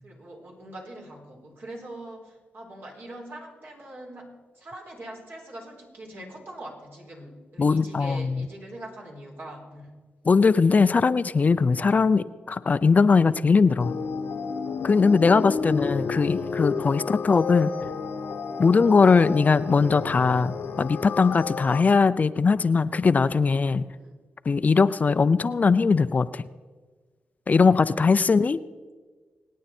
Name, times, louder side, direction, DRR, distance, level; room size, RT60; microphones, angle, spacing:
voice 1, 0.0-9.9 17.0-17.3 18.8-19.0 24.0-24.2 24.9-25.2 27.7-28.4, right 1 dB, 60° right, -1 dB, 4.1 m, -43 dB
voice 2, 7.6-8.5 10.3-13.9 14.8-17.7 18.6-23.8 24.5-26.4 27.5-28.6, left 4 dB, 40° left, 14 dB, 0.5 m, -20 dB
sound 1, 13.8-21.8, left 5 dB, 75° left, 1.1 m, -31 dB
24.5 x 9.3 x 4.3 m, 1.4 s
cardioid pair, 60°, 4 cm